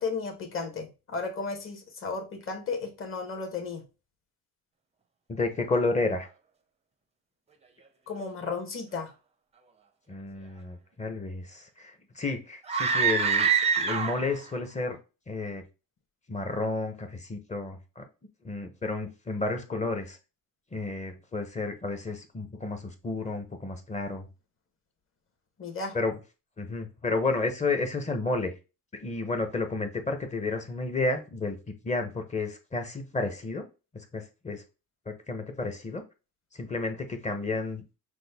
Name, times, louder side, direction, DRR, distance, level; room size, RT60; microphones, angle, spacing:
voice 1, 0.0-3.8 8.1-9.1 25.6-26.0, left 4 dB, 35° left, 4 dB, 1.1 m, -34 dB
voice 2, 5.3-6.3 10.1-13.5 13.8-15.0 15.3-15.6 16.3-18.0 18.4-20.2 20.7-24.3 25.9-26.2 26.6-28.5 29.0-31.6 31.8-33.6 34.1-34.6 35.1-36.0 36.5-37.8, left 3 dB, 20° left, 6 dB, 0.7 m, -31 dB
sound 1, 12.6-14.4, right 6 dB, 20° right, 0.5 m, -25 dB
6.1 x 2.2 x 3.4 m, 0.29 s
cardioid pair, 165°, 35 cm